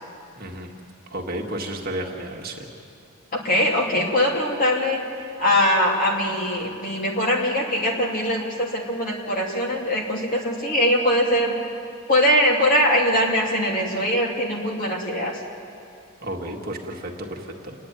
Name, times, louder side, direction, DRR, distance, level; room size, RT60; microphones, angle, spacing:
voice 1, 0.4-0.7 1.1-2.7 16.2-17.7, right 1 dB, 45° right, 0 dB, 1.8 m, -32 dB
voice 2, 3.4-5.0 5.4-11.6 12.1-15.4, equal, 40° left, -1 dB, 2.7 m, -22 dB
29.5 x 10.5 x 9.2 m, 2.5 s
head